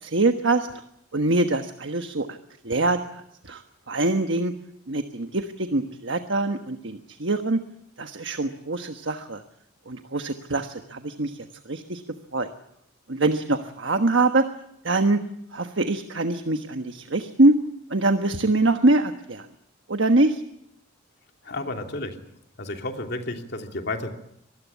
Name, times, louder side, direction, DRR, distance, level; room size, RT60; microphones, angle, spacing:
voice 1, 0.0-0.7 1.1-2.4 2.6-4.5 4.9-7.6 8.0-9.4 9.9-12.0 12.3-12.5 13.1-14.4 14.8-15.2 15.5-17.6 17.9-19.5 19.9-20.4, right 2 dB, 65° right, 7 dB, 1.3 m, -24 dB
voice 2, 21.4-22.2 22.6-24.1, left 2 dB, 55° left, 4 dB, 2.9 m, -31 dB
25.0 x 19.5 x 8.3 m, 0.76 s
head